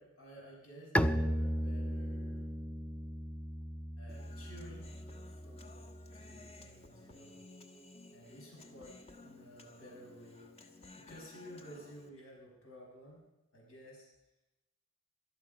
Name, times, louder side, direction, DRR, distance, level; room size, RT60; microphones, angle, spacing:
voice 1, 0.0-2.5 4.0-5.8 6.1-7.4 8.1-10.5 10.9-13.2 13.5-14.1, equal, 70° left, -2 dB, 5.9 m, -53 dB
Bowed string instrument, 0.9-6.5, equal, 5° left, 0.5 m, -36 dB
Human voice, 4.1-12.1, left 2 dB, 30° left, 1.3 m, -55 dB
19.0 x 12.5 x 5.3 m, 0.98 s
head